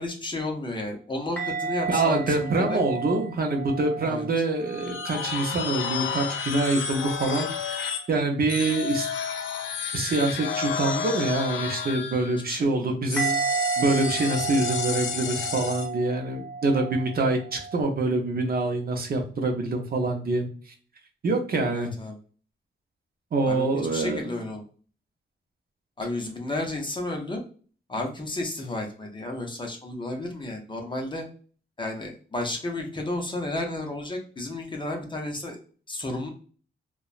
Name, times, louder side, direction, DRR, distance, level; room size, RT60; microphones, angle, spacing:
voice 1, 0.0-2.8 4.0-4.3 12.5-12.9 21.7-22.1 23.5-23.7 23.9-24.6 26.0-27.4 27.9-31.3 31.8-35.6 35.9-36.3, left 2 dB, 25° left, 1 dB, 0.6 m, -32 dB
sound 1, 1.4-5.3 5.6-6.2 13.2-17.8, right 4 dB, 10° left, 1.0 m, -32 dB
voice 2, 1.9-9.1 9.9-13.4 13.8-20.7 21.2-21.9 23.3-24.3, right 2 dB, 50° right, 3 dB, 0.6 m, -25 dB
sound 2, 4.7-8.1 8.5-12.5 13.1-15.9, left 6 dB, 80° left, 0.4 m, -31 dB
2.9 x 2.2 x 2.4 m, 0.41 s
wide cardioid pair, 140°, 20 cm